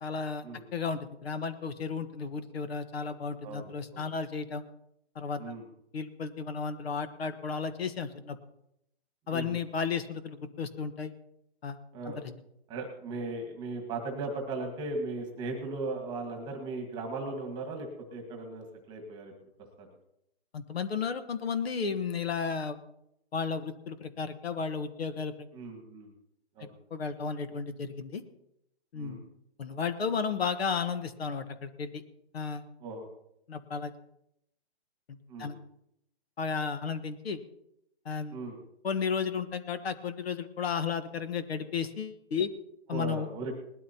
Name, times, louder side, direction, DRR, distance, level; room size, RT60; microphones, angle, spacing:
voice 1, 0.0-0.4 0.7-4.6 5.1-5.4 5.9-8.4 9.3-11.1 11.6-11.8 12.0-12.4 20.5-22.8 23.3-25.3 26.9-28.2 28.9-29.2 29.6-32.0 32.3-32.6 33.5-33.9 35.4-35.5 36.4-37.4 38.0-38.4 38.8-42.5 42.9-43.3, left 5 dB, 65° left, 10 dB, 1.3 m, -33 dB
voice 2, 3.4-4.0 5.4-5.6 9.3-9.6 11.9-12.2 12.7-19.3 19.8-19.9 25.5-26.1 26.5-26.7 28.9-29.2 32.8-33.1 35.3-35.5 38.3-38.6 42.9-43.5, right 3 dB, 15° right, 3 dB, 1.6 m, -37 dB
20.0 x 12.5 x 2.9 m, 0.79 s
hypercardioid pair, 160°, 33 cm